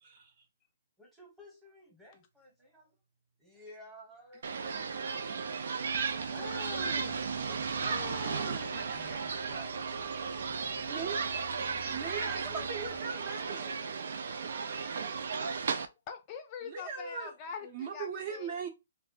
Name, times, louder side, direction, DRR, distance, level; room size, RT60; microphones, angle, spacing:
voice 1, 0.0-0.3 4.5-5.5 8.1-9.3 10.8-11.2 11.5-13.8 16.6-17.3 17.6-18.7, right 5 dB, 40° right, 0.7 m, -41 dB
voice 2, 1.0-3.0 3.4-4.9 6.1-6.5 7.4-7.7 8.7-11.0 12.2-12.7 13.0-15.0, equal, 5° right, 0.9 m, -55 dB
sound 1, 4.4-15.9, right 5 dB, 70° right, 0.3 m, -35 dB
sound 2, 5.9-13.0, left 6 dB, 90° left, 0.4 m, -53 dB
voice 3, 6.3-7.2 7.8-9.0 16.1-18.6, left 7 dB, 30° left, 0.4 m, -44 dB
2.4 x 2.0 x 3.7 m
hypercardioid pair, 150°, 0 cm